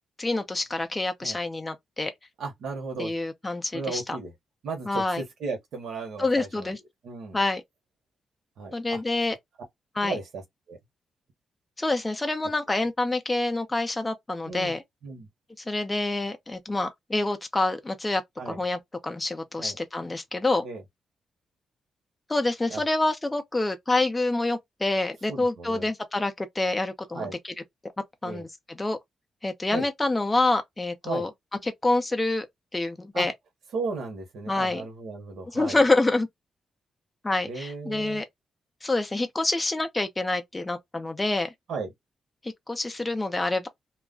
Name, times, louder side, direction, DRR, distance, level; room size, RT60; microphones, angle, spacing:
voice 1, 0.2-2.1 3.0-4.2 4.9-5.2 6.2-6.8 7.3-7.6 8.7-9.4 10.0-10.2 11.8-14.8 15.6-20.7 22.3-27.5 28.2-29.0 29.4-31.3 31.6-32.5 32.7-33.3 34.5-34.9 35.5-36.3 37.2-38.2 38.8-41.5 42.4-43.7, left 2 dB, 15° left, 0.5 m, -27 dB
voice 2, 2.4-3.1 3.7-4.3 4.6-6.7 7.0-7.4 8.6-9.0 10.0-10.4 10.7-10.8 14.5-14.7 15.0-15.3 18.4-18.6 19.6-19.8 20.6-20.8 22.7-22.8 25.3-25.9 27.1-27.3 28.2-28.5 29.7-29.9 31.0-31.3 33.1-33.3 33.7-35.8 37.4-38.2 41.7-41.9, right 4 dB, 80° right, 0.9 m, -35 dB
2.3 x 2.1 x 3.5 m
cardioid pair, 120°, 0 cm